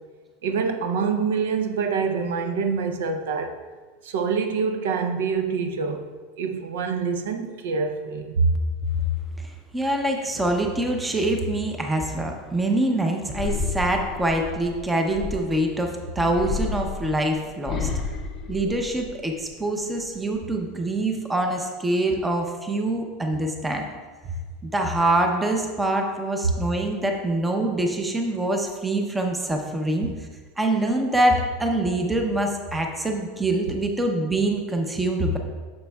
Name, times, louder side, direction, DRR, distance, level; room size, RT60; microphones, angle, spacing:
voice 1, 0.4-3.6 4.0-6.1 6.4-8.6, right 5 dB, 85° right, 0.6 m, -25 dB
voice 2, 9.4-17.9 18.5-23.8 24.6-30.1 30.6-35.4, right 1 dB, 10° right, 0.6 m, -25 dB
sound 1, 13.3-15.7 16.3-19.4 19.8-20.4, left 5 dB, 30° left, 0.7 m, -32 dB
9.3 x 6.5 x 2.3 m
supercardioid pair, 165°, 0 cm